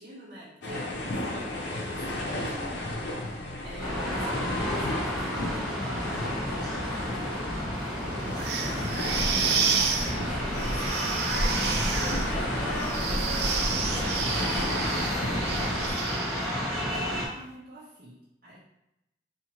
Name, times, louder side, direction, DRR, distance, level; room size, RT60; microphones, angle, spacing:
voice 1, 0.0-18.6, equal, 50° right, -8 dB, 0.9 m, -46 dB
sound 1, 0.6-15.9, left 1 dB, 80° left, 0.8 m, -33 dB
sound 2, 3.8-17.3, equal, ahead, 1.4 m, -31 dB
sound 3, 8.3-16.6, right 6 dB, 65° right, 0.5 m, -31 dB
4.9 x 2.7 x 2.9 m, 0.86 s
head